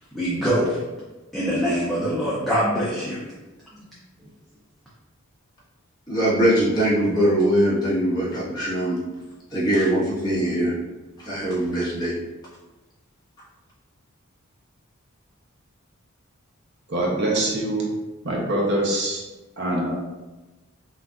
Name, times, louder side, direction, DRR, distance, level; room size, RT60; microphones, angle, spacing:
voice 1, 0.1-0.8 1.3-3.2, equal, ahead, -9 dB, 0.6 m, -23 dB
voice 2, 6.1-9.0 9.5-10.7 11.2-12.1, right 1 dB, 20° left, -9 dB, 1.3 m, -21 dB
voice 3, 16.9-17.9 18.2-19.2 19.6-19.9, right 1 dB, 55° right, -2 dB, 0.9 m, -24 dB
5.8 x 2.5 x 2.5 m, 1.1 s
head